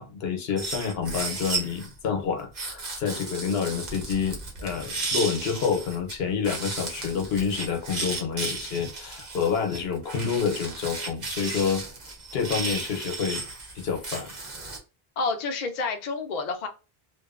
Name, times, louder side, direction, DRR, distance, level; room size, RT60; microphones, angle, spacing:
voice 1, 0.0-11.9 12.3-13.5 13.7-14.3, left 6 dB, 75° left, 0.9 m, -28 dB
sound 1, 0.6-1.9 2.5-6.1 6.4-14.8, right 3 dB, 50° right, 0.8 m, -34 dB
voice 2, 15.2-16.7, left 4 dB, 55° left, 0.5 m, -29 dB
2.5 x 2.3 x 2.4 m
omnidirectional pair, 1.0 m